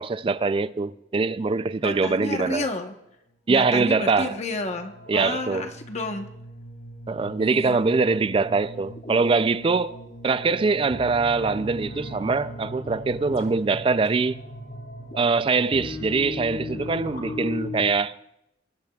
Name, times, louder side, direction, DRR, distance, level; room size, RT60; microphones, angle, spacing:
voice 1, 0.0-2.7 3.5-4.4 5.1-5.7 7.1-10.0 10.2-14.4 15.2-18.2, right 4 dB, 30° right, 0.3 m, -23 dB
sound 1, 0.8-1.0 3.7-17.9, left 1 dB, 55° left, 2.5 m, -38 dB
voice 2, 1.8-2.9 3.5-6.3 7.4-7.8, left 2 dB, 35° left, 1.0 m, -31 dB
21.5 x 12.0 x 2.3 m
head